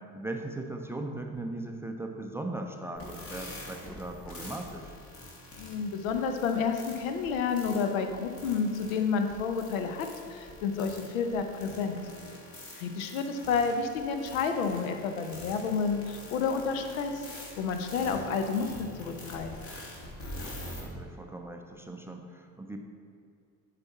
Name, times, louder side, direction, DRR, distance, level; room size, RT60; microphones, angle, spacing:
voice 1, 0.0-4.9 20.3-22.8, right 2 dB, 5° right, 3 dB, 0.5 m, -39 dB
sound 1, 3.0-20.8, left 1 dB, 30° left, 1.7 m, -45 dB
voice 2, 5.6-12.0 12.8-17.2 17.6-19.5, left 5 dB, 65° left, 6 dB, 0.8 m, -30 dB
9.8 x 4.2 x 4.1 m, 2.3 s
figure-of-eight pair, 55°, 43 cm